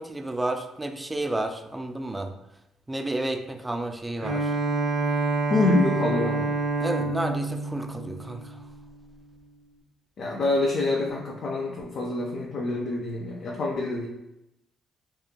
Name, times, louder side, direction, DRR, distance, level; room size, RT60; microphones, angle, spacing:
voice 1, 0.0-2.3 2.9-4.5 6.8-8.6, right 1 dB, 15° right, 5 dB, 0.3 m, -31 dB
Bowed string instrument, 4.2-8.9, right 3 dB, 65° right, 0.6 m, -28 dB
voice 2, 5.5-6.5 10.2-14.1, left 2 dB, 60° left, -1 dB, 0.4 m, -26 dB
2.9 x 2.4 x 2.2 m, 0.89 s
supercardioid pair, 65°, 0 cm